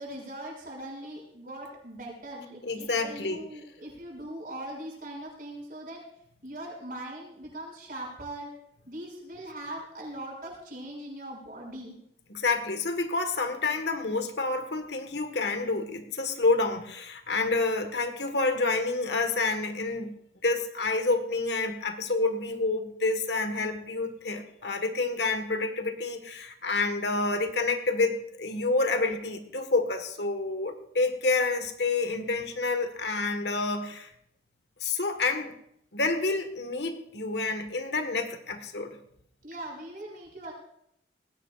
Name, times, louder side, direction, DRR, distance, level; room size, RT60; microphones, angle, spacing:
voice 1, 0.0-6.0 6.4-8.5 8.9-11.9 39.4-40.5, right 1 dB, 50° right, -1 dB, 6.4 m, -40 dB
voice 2, 2.6-3.4 12.3-20.1 20.4-34.1 34.8-35.5 35.9-39.0, left 3 dB, 75° left, 7 dB, 1.6 m, -28 dB
19.5 x 17.0 x 2.5 m, 0.72 s
head